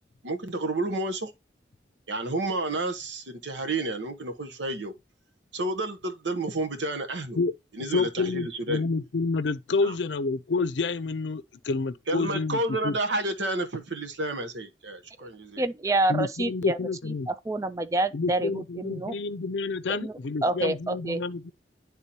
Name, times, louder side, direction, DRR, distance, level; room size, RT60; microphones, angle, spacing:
voice 1, 0.2-1.3 2.1-4.9 5.5-7.4 7.8-8.8 9.8-9.9 12.1-15.6, right 2 dB, 85° right, 0.9 m, -30 dB
voice 2, 7.9-13.0 16.1-17.3 18.1-21.5, left 4 dB, 80° left, 0.5 m, -29 dB
voice 3, 15.6-16.8 17.3-19.1 19.9-20.1 20.4-21.2, right 2 dB, 15° right, 0.3 m, -27 dB
10.0 x 3.6 x 2.8 m
head